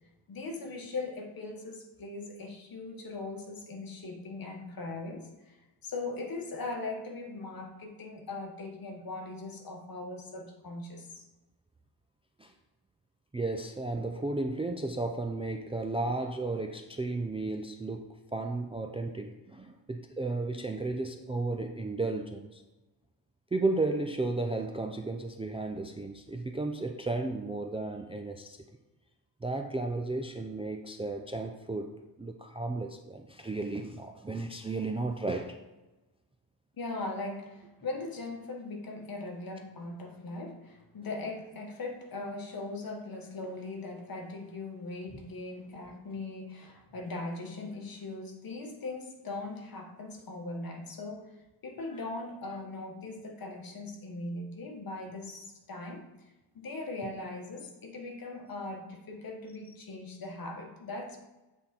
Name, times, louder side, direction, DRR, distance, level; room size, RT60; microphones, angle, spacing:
voice 1, 0.3-5.6 5.8-11.2 36.8-51.3 51.6-56.1 56.5-61.2, left 2 dB, 55° left, 2 dB, 1.1 m, -40 dB
voice 2, 13.3-22.6 23.5-28.6 29.4-35.6 45.1-45.2, right 2 dB, 15° right, 4 dB, 0.3 m, -34 dB
7.9 x 3.6 x 4.3 m, 1.1 s
wide cardioid pair, 145°, 42 cm